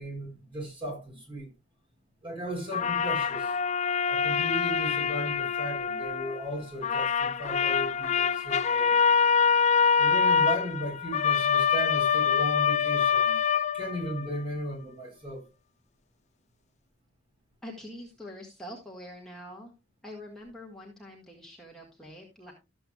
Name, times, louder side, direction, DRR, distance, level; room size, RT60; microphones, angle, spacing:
voice 1, 0.0-1.5 2.2-3.6 4.1-8.9 10.0-13.4 13.7-15.4, right 1 dB, 30° right, 5.8 m, -36 dB
sound 1, 2.7-6.5 6.8-14.4, left 6 dB, 35° left, 0.4 m, -25 dB
voice 2, 17.6-19.7 20.0-22.5, left 1 dB, 5° left, 1.8 m, -44 dB
13.5 x 7.8 x 2.4 m
head